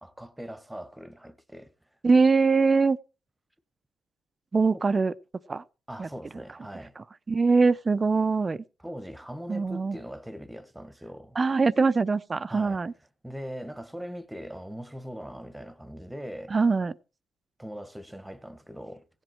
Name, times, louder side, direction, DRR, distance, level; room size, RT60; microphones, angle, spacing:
voice 1, 0.0-1.7 4.7-4.8 5.9-6.9 8.8-11.4 12.5-12.8 13.2-16.5 17.6-19.0, equal, 5° right, 1.2 m, -40 dB
voice 2, 2.0-3.0 4.5-5.1 5.5-5.6 6.0-6.1 7.0-8.6 9.5-10.0 11.4-12.9 16.5-16.9, right 4 dB, 30° right, 0.6 m, -23 dB
16.5 x 7.7 x 4.5 m
cardioid pair, 90°, 0 cm